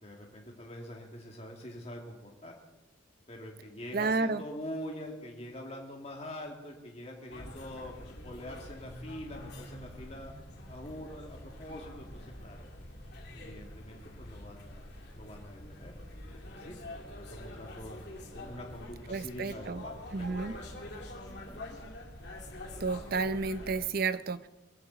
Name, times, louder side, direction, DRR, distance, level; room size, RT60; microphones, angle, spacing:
voice 1, 0.0-2.6 3.3-10.3 10.7-12.7 13.3-15.9 16.5-16.7 17.1-18.0 18.3-20.6 20.9-21.1 21.5-21.6 22.7-22.8, left 1 dB, 30° left, 0 dB, 2.3 m, -45 dB
voice 2, 3.9-4.4 19.1-19.8 20.1-20.6 22.8-24.5, right 4 dB, 50° right, 13 dB, 0.7 m, -31 dB
sound 1, 7.3-23.9, left 1 dB, 55° left, 2.9 m, -46 dB
22.5 x 15.0 x 4.1 m, 1.0 s
head